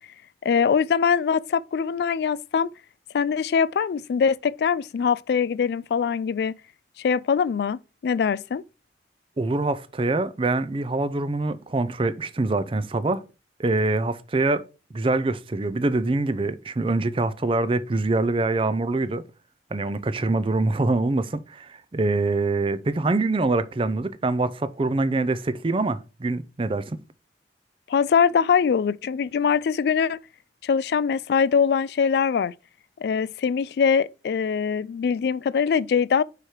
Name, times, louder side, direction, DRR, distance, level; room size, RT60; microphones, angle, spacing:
voice 1, 0.4-2.7 3.1-6.6 7.0-8.6 27.9-30.2 30.6-32.5 33.0-36.2, left 6 dB, 65° left, 0.3 m, -22 dB
voice 2, 9.4-13.2 13.6-14.6 14.9-19.2 19.7-27.0, right 2 dB, 30° right, 0.5 m, -24 dB
4.9 x 4.8 x 4.4 m
head